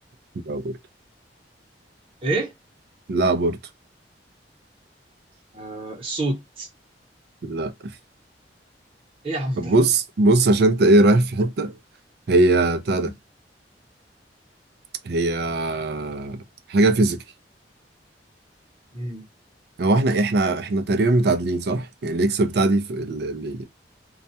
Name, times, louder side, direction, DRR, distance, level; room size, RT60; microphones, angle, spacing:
voice 1, 0.5-0.8 3.1-3.6 7.4-7.9 9.6-11.8 12.3-13.1 15.0-16.4 16.7-17.2 19.8-23.6, right 2 dB, 65° right, 0.4 m, -20 dB
voice 2, 2.2-2.5 5.5-6.7 9.2-9.7 12.9-13.1 18.9-19.2, right 2 dB, 35° right, 0.9 m, -28 dB
2.3 x 2.1 x 2.7 m
head